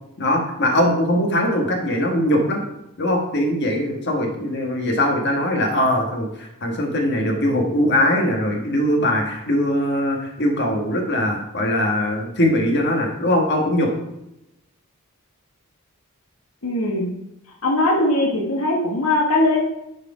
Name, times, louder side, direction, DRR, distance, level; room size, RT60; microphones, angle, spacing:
voice 1, 0.2-2.6 3.0-13.9, left 1 dB, 50° left, 2 dB, 1.5 m, -21 dB
voice 2, 16.6-17.1 17.6-19.6, left 1 dB, 70° left, 0 dB, 1.3 m, -20 dB
10.5 x 4.8 x 4.9 m, 0.89 s
head